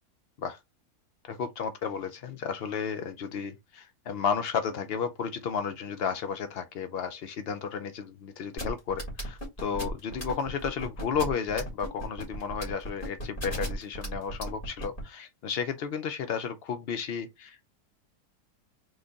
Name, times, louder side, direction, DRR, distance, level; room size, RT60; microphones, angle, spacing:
voice 1, 1.3-17.6, left 6 dB, 80° left, 0.5 m, -33 dB
sound 1, 8.6-15.0, right 1 dB, 35° left, 2.4 m, -35 dB
4.0 x 3.2 x 3.5 m
omnidirectional pair, 1.7 m